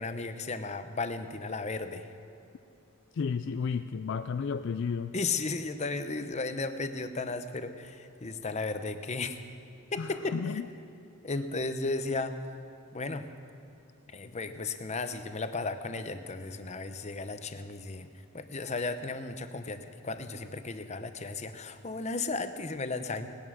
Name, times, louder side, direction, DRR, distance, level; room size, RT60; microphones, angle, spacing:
voice 1, 0.0-2.1 5.1-9.4 9.9-10.5 11.2-12.4 12.9-13.3 14.1-18.1 18.3-23.3, left 3 dB, 30° left, 9 dB, 0.7 m, -34 dB
voice 2, 3.1-5.2 10.0-10.7, left 5 dB, 55° left, 10 dB, 0.3 m, -32 dB
18.5 x 11.0 x 6.2 m, 2.9 s
head